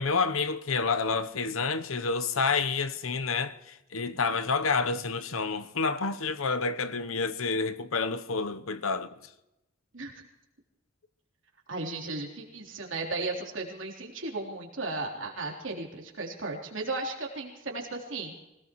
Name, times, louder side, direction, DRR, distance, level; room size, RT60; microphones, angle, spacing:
voice 1, 0.0-9.2, left 4 dB, 85° left, 0.9 m, -29 dB
voice 2, 11.7-18.4, right 3 dB, 65° right, 3.5 m, -35 dB
25.5 x 18.5 x 3.1 m
head